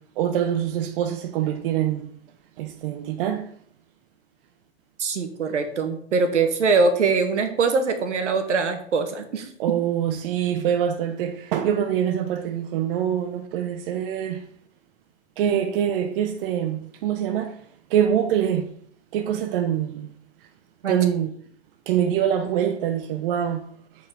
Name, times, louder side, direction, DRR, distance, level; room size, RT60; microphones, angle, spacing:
voice 1, 0.0-2.2 2.6-3.5 9.6-14.5 15.4-17.6 17.9-18.7 19.1-20.2 20.9-21.5 21.9-23.7, right 9 dB, 50° right, 0.8 m, -24 dB
voice 2, 5.0-9.5 20.8-21.0, right 4 dB, 80° right, 1.4 m, -22 dB
8.3 x 4.3 x 4.7 m
hypercardioid pair, 120°, 35 cm